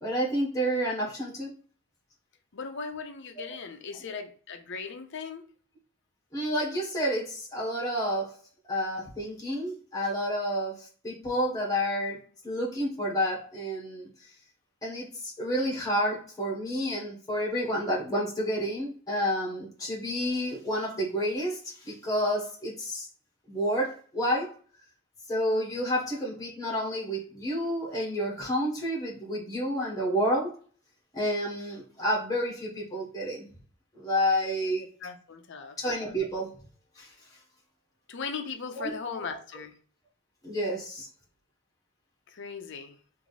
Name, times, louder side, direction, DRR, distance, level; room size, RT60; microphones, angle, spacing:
voice 1, 0.0-1.5 6.3-8.4 8.7-12.2 12.4-14.1 14.8-23.1 23.5-24.5 25.3-30.5 31.1-33.5 33.9-34.8 35.8-36.5 37.0-37.1 38.8-38.9 40.4-41.1, equal, 15° left, -4 dB, 1.3 m, -29 dB
voice 2, 2.5-5.4 35.0-35.8 38.1-39.7 42.3-43.0, left 5 dB, 60° left, 7 dB, 0.6 m, -38 dB
3.5 x 2.7 x 4.0 m, 0.43 s
head